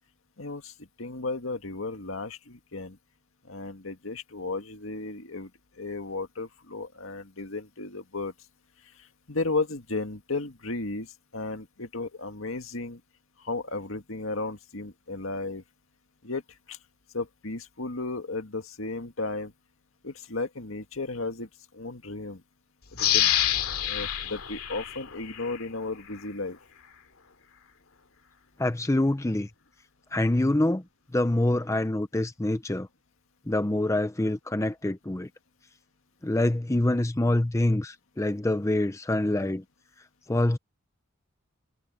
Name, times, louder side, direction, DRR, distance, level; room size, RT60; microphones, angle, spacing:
voice 1, 0.4-0.7 1.0-3.0 3.5-5.5 5.8-8.3 9.3-11.1 11.3-13.0 13.4-15.6 16.2-16.4 16.7-16.8 17.1-19.5 20.0-21.5 21.7-22.4 23.1-23.3 23.9-26.6, left 3 dB, 70° left, 2.0 m, -34 dB
sound 1, 23.0-25.6 26.1-26.2, left 11 dB, 90° left, 2.6 m, -27 dB
voice 2, 28.6-29.5 30.1-30.8 31.1-32.9 33.5-35.3 36.2-39.6 40.3-40.6, left 1 dB, 15° left, 0.5 m, -25 dB
head